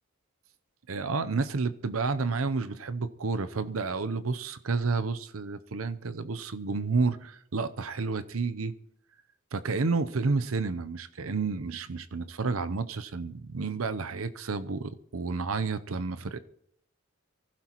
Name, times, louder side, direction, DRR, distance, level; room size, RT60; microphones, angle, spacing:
voice 1, 0.9-8.8 9.5-16.4, right 4 dB, 85° right, 0.7 m, -30 dB
24.0 x 15.5 x 3.0 m
head